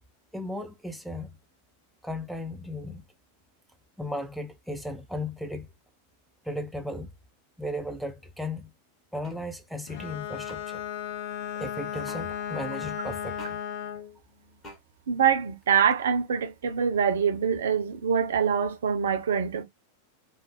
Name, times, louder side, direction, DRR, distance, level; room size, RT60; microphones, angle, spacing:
voice 1, 0.3-1.4 2.0-3.1 4.0-5.7 6.4-7.1 7.6-8.7 9.1-10.8 11.6-13.6, left 1 dB, ahead, 0.4 m, -35 dB
sound 1, 9.2-9.4 10.5-10.6 12.1-12.2 13.4-13.6 14.6-14.8, equal, 20° left, 1.2 m, -45 dB
Bowed string instrument, 9.9-14.1, left 9 dB, 60° left, 0.5 m, -35 dB
voice 2, 15.1-19.6, right 7 dB, 65° right, 0.5 m, -24 dB
3.1 x 2.0 x 2.8 m
figure-of-eight pair, 90°, 0 cm